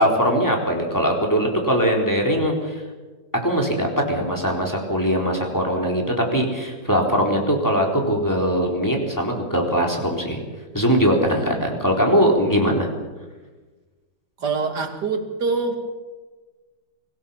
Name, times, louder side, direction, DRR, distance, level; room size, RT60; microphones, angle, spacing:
voice 1, 0.0-2.8 3.4-10.4 10.7-12.9, equal, 10° left, 0 dB, 4.0 m, -21 dB
voice 2, 14.4-15.8, right 4 dB, 60° right, 4 dB, 2.9 m, -25 dB
24.0 x 16.5 x 7.2 m, 1.3 s
omnidirectional pair, 2.1 m